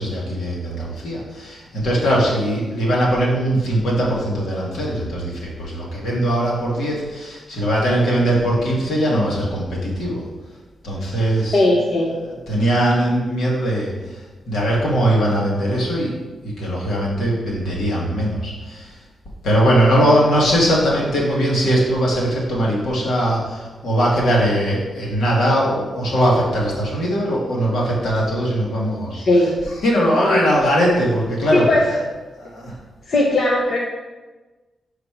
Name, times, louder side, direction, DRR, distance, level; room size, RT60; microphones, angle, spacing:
voice 1, 0.0-10.3 10.8-11.8 12.1-13.9 14.5-16.1 16.4-18.9 19.4-29.2 29.8-31.7 32.4-32.7, equal, 80° left, -4 dB, 2.1 m, -20 dB
voice 2, 11.5-12.1 29.1-29.6 31.5-32.0 33.1-33.8, left 1 dB, 50° left, -2 dB, 0.8 m, -17 dB
6.3 x 4.9 x 4.8 m, 1.2 s
wide cardioid pair, 150°, 0 cm